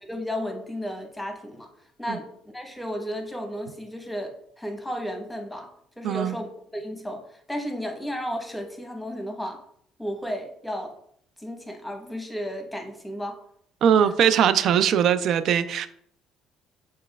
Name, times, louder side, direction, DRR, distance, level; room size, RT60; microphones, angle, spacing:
voice 1, 0.0-1.7 2.0-5.7 6.0-9.6 10.0-11.0 11.4-13.4, equal, 5° left, 3 dB, 1.0 m, -33 dB
voice 2, 6.0-6.4 13.8-15.9, right 8 dB, 60° right, 13 dB, 0.3 m, -20 dB
6.2 x 3.2 x 2.3 m, 0.65 s
supercardioid pair, 90°, 0 cm